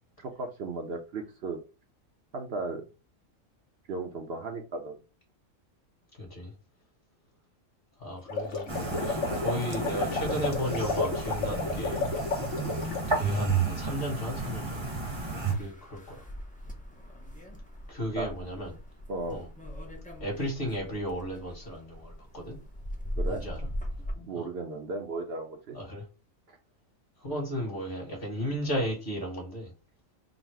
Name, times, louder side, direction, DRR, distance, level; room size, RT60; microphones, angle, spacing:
voice 1, 0.2-1.6 2.3-2.8 3.9-5.0 18.1-18.3 19.1-19.4 23.2-23.4 24.3-25.8 26.5-26.6, right 3 dB, 60° right, 3 dB, 0.8 m, -35 dB
voice 2, 6.2-6.5 8.0-8.7 9.0-12.1 13.1-14.8 15.3-16.2 17.9-18.7 19.3-19.5 20.2-22.6 23.3-23.6 24.1-24.4 25.7-26.0 27.2-29.7, equal, 45° left, -1 dB, 1.4 m, -34 dB
sound 1, 8.2-13.1, left 4 dB, 85° left, 1.2 m, -32 dB
sound 2, 8.7-15.5, right 3 dB, 25° right, 0.8 m, -32 dB
sound 3, 15.0-24.1, equal, 10° left, 0.4 m, -40 dB
3.9 x 2.0 x 4.5 m, 0.32 s
omnidirectional pair, 1.3 m